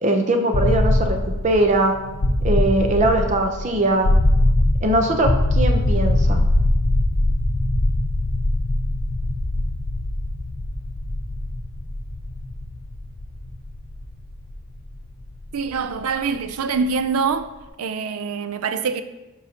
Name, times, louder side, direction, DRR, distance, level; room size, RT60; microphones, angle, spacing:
voice 1, 0.0-1.9 2.4-4.1 4.8-6.4, right 1 dB, 35° right, 0.7 m, -20 dB
sound 1, 0.5-16.4, left 1 dB, 60° left, 0.6 m, -22 dB
voice 2, 15.5-17.5 17.8-19.0, right 5 dB, 85° right, 0.5 m, -24 dB
9.6 x 5.5 x 2.9 m
head